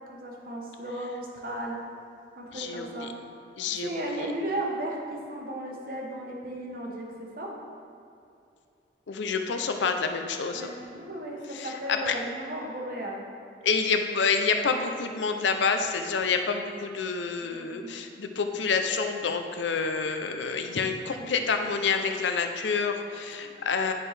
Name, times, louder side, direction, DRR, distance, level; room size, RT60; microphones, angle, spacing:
voice 1, 0.1-1.8 2.4-3.1 3.8-7.0 7.4-7.5 10.5-13.2 17.4-18.0 20.6-20.8 21.1-21.4 23.1-23.5, right 1 dB, 50° right, -1 dB, 1.1 m, -35 dB
voice 2, 2.5-3.1 3.6-3.9 4.2-4.3 9.1-10.7 11.5-11.7 12.1-12.2 13.6-23.9, left 5 dB, 80° left, 6 dB, 0.5 m, -28 dB
9.8 x 4.4 x 3.3 m, 2.6 s
head